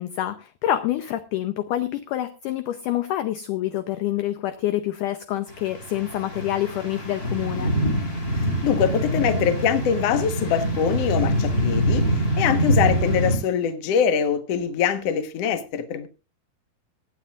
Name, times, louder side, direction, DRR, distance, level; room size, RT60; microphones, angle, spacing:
voice 1, 0.0-7.7, left 13 dB, 80° left, 11 dB, 1.9 m, -27 dB
sound 1, 5.5-13.4, equal, 25° left, 2.7 m, -24 dB
voice 2, 8.3-12.1 12.4-16.1, left 8 dB, 60° left, 9 dB, 1.7 m, -23 dB
24.0 x 9.4 x 2.4 m, 0.30 s
omnidirectional pair, 4.4 m